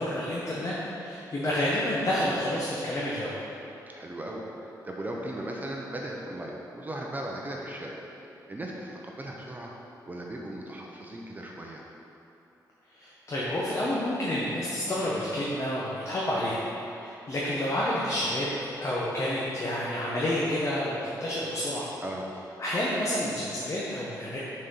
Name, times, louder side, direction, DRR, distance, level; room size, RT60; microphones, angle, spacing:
voice 1, 0.0-3.3 12.9-18.5 18.8-21.9 22.6-24.4, left 1 dB, 40° left, -6 dB, 1.1 m, -29 dB
voice 2, 3.9-9.7 10.1-11.8 22.0-22.3, right 1 dB, 25° right, -1 dB, 0.8 m, -37 dB
6.3 x 4.3 x 5.5 m, 2.9 s
cardioid pair, 95°, 7 cm